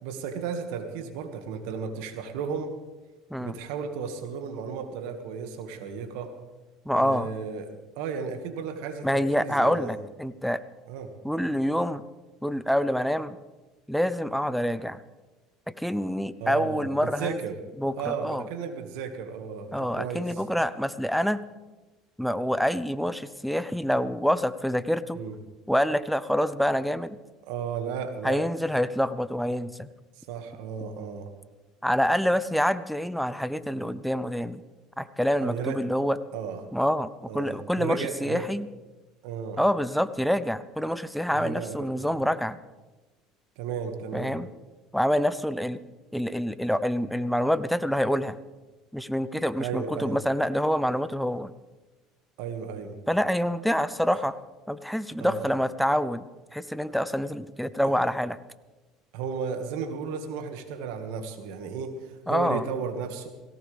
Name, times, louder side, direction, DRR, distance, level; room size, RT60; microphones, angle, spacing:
voice 1, 0.0-2.8 3.4-6.3 7.0-9.9 10.9-11.1 16.4-17.6 17.9-20.4 25.1-25.4 27.4-28.4 30.1-31.3 35.4-35.8 36.3-36.6 37.3-38.5 39.2-39.6 41.3-42.2 43.6-44.4 49.6-50.2 52.4-53.0 55.2-55.6 59.1-63.3, right 6 dB, 80° right, 6 dB, 1.9 m, -34 dB
voice 2, 6.9-7.3 9.0-10.6 11.2-12.0 12.4-13.4 13.9-15.0 15.7-17.4 17.8-18.4 19.7-21.4 22.2-25.2 25.7-27.2 28.2-29.9 31.8-34.6 35.0-36.2 36.7-38.7 39.6-42.6 44.1-44.5 44.9-45.8 46.1-48.4 48.9-51.5 53.1-54.4 54.7-56.2 56.5-58.4 62.3-62.6, equal, ahead, 14 dB, 0.7 m, -26 dB
18.0 x 17.0 x 3.5 m, 1.2 s
supercardioid pair, 105°, 0 cm